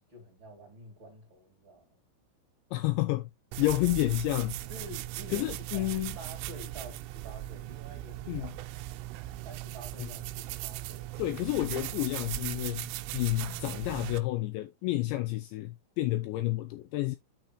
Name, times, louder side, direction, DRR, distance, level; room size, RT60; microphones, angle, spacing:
voice 1, 0.0-2.0 3.6-3.8 4.7-8.5 9.4-11.1, equal, 35° right, 2.4 m, -48 dB
voice 2, 2.7-3.3 3.6-4.6 5.3-6.2 8.3-8.5 10.0-10.1 11.2-12.9 13.1-17.2, left 17 dB, 85° left, 2.7 m, -30 dB
sound 1, 3.5-14.2, right 16 dB, 85° right, 3.2 m, -38 dB
9.2 x 5.8 x 3.0 m
omnidirectional pair, 5.8 m